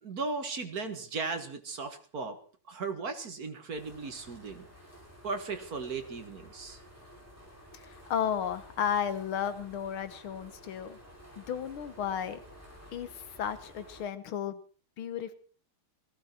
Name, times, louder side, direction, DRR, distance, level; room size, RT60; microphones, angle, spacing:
voice 1, 0.0-2.4 2.7-4.7 5.2-6.8, right 4 dB, 50° right, 8 dB, 1.9 m, -36 dB
sound 1, 3.7-14.0, equal, 5° left, 5.6 m, -53 dB
voice 2, 7.7-11.0 11.4-12.4 12.9-14.6 15.0-15.3, left 8 dB, 80° left, 12 dB, 2.0 m, -33 dB
18.5 x 15.5 x 4.4 m, 0.41 s
omnidirectional pair, 2.3 m